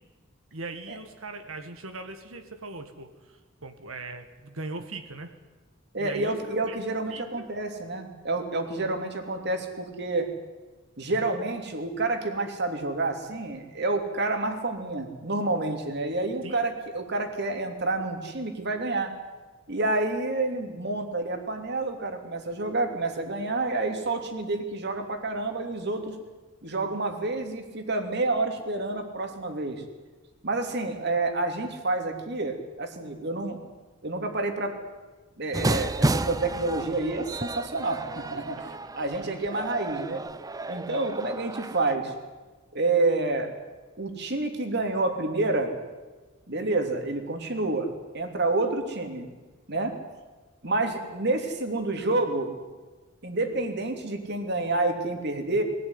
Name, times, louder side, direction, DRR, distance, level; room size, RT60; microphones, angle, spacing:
voice 1, 0.5-5.3 6.0-6.4 6.7-6.8 7.1-7.5 7.9-8.0 16.4-16.6, right 3 dB, 80° right, 6 dB, 1.9 m, -40 dB
voice 2, 5.9-10.3 11.0-19.1 19.7-26.2 26.6-29.8 30.4-33.6 34.0-34.7 35.4-38.6 38.9-40.2 40.7-42.1 42.7-43.5 44.0-45.8 46.5-47.9 48.1-49.3 49.7-49.9 50.6-52.5 53.2-55.6, right 2 dB, 55° right, 5 dB, 3.2 m, -28 dB
sound 1, 35.5-42.0, right 2 dB, 15° right, 0.6 m, -31 dB
22.5 x 17.0 x 9.8 m, 1.3 s
head